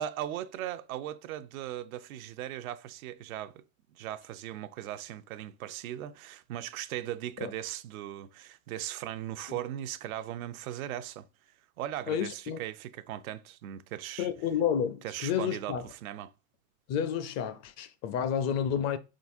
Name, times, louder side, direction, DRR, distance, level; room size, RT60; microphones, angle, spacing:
voice 1, 0.0-3.6 3.9-11.3 11.8-14.3 15.0-16.3, right 12 dB, 75° right, 0.5 m, -38 dB
voice 2, 12.1-12.6 14.2-15.8 16.9-19.0, left 8 dB, 40° left, 0.5 m, -30 dB
4.0 x 3.8 x 2.6 m
hypercardioid pair, 90°, 42 cm